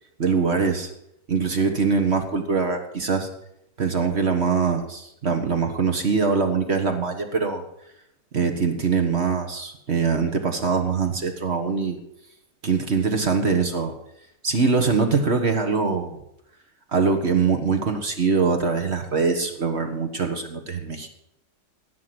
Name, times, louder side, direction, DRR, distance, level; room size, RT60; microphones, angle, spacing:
voice 1, 0.2-0.9 1.3-3.3 3.8-7.6 8.3-12.0 12.6-14.0 14.4-16.2 16.9-21.1, right 5 dB, 40° right, 5 dB, 1.5 m, -23 dB
17.0 x 6.1 x 7.9 m, 0.78 s
omnidirectional pair, 1.9 m